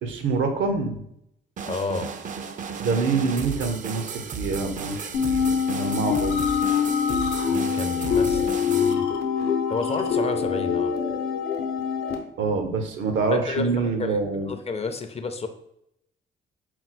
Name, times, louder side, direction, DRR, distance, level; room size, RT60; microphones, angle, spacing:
voice 1, 0.0-1.0 2.8-6.4 12.4-14.5, right 4 dB, 75° right, 6 dB, 0.7 m, -26 dB
voice 2, 1.6-2.1 7.5-9.1 9.7-10.9 13.3-14.2 14.5-15.5, left 4 dB, 30° left, 8 dB, 0.4 m, -31 dB
sound 1, 1.6-8.9, right 6 dB, 40° right, 0.4 m, -34 dB
sound 2, 5.1-12.2, left 6 dB, 85° left, 0.7 m, -24 dB
4.4 x 2.0 x 4.1 m, 0.77 s
cardioid pair, 90°, 20 cm